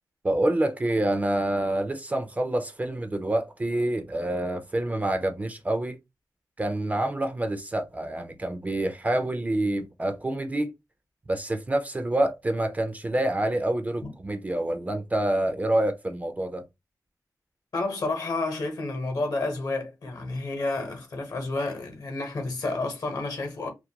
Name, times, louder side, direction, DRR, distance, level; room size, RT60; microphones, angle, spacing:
voice 1, 0.2-6.0 6.6-10.7 11.3-16.6, right 1 dB, 20° right, 0.4 m, -27 dB
voice 2, 17.7-23.7, left 2 dB, 60° left, 0.9 m, -30 dB
2.3 x 2.1 x 2.7 m
wide cardioid pair, 100°, 7 cm